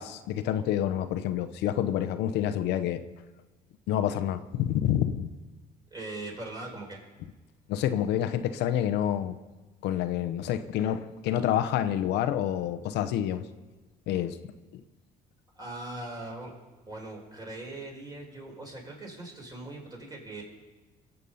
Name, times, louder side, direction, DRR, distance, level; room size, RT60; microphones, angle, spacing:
voice 1, 0.0-3.0 3.9-5.3 7.7-9.4 9.8-13.4 14.1-14.4 14.7-14.8, left 11 dB, 85° left, 10 dB, 0.8 m, -28 dB
voice 2, 5.9-7.0 15.5-16.5 16.8-20.4, right 2 dB, 25° right, -1 dB, 4.9 m, -40 dB
23.0 x 8.0 x 5.6 m, 1.2 s
cardioid pair, 110°, 17 cm